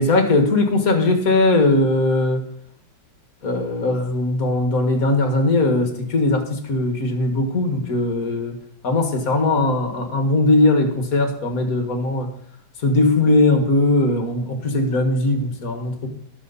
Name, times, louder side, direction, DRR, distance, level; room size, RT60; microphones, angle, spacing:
voice 1, 0.0-2.4 3.4-8.6 8.8-12.3 12.8-16.1, left 2 dB, 45° left, 5 dB, 2.1 m, -19 dB
20.5 x 7.0 x 4.1 m, 0.70 s
omnidirectional pair, 2.2 m